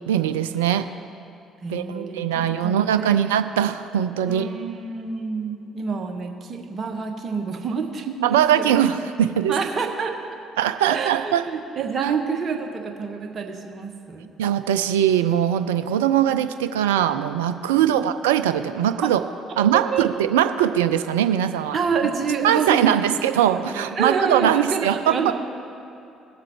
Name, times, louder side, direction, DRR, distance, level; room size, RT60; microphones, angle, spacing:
voice 1, 0.1-0.9 1.7-4.5 8.2-9.6 10.6-11.5 12.0-12.1 14.4-19.2 19.6-21.8 22.4-25.3, right 10 dB, 80° right, 11 dB, 0.4 m, -21 dB
voice 2, 1.6-3.3 4.3-8.7 9.5-10.3 10.9-14.3 17.8-18.0 19.6-20.1 21.7-23.3 23.7-25.3, right 5 dB, 45° right, 3 dB, 1.4 m, -28 dB
19.0 x 7.4 x 3.1 m, 2.8 s
hypercardioid pair, 50°, 0 cm